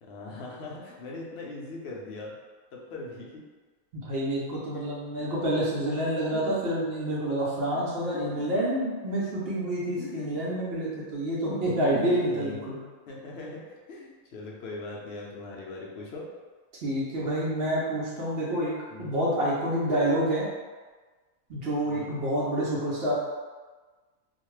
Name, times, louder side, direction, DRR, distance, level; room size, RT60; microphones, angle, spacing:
voice 1, 0.0-2.4 2.7-3.4 5.1-5.3 6.3-6.6 7.7-8.6 10.0-10.3 11.6-12.6 13.1-16.3 18.9-19.1 21.8-22.1, left 2 dB, 60° left, -3 dB, 0.7 m, -40 dB
voice 2, 4.0-12.8 16.8-18.7 19.0-20.5 21.5-23.1, right 1 dB, 60° right, -6 dB, 0.7 m, -28 dB
2.5 x 2.2 x 3.1 m, 1.4 s
omnidirectional pair, 1.5 m